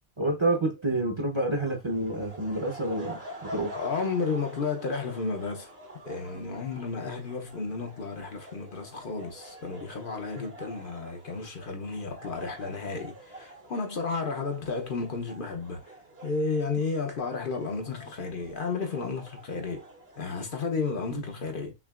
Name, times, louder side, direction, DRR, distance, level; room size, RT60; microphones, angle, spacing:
voice 1, 0.2-3.8 6.3-6.6 21.1-21.2, right 2 dB, 30° right, 0.8 m, -29 dB
sound 1, 1.7-21.1, right 1 dB, 65° right, 1.8 m, -47 dB
voice 2, 3.7-5.7 6.1-15.9 16.2-19.9 20.2-21.7, left 4 dB, 55° left, 0.9 m, -32 dB
5.7 x 2.5 x 2.4 m
omnidirectional pair, 1.1 m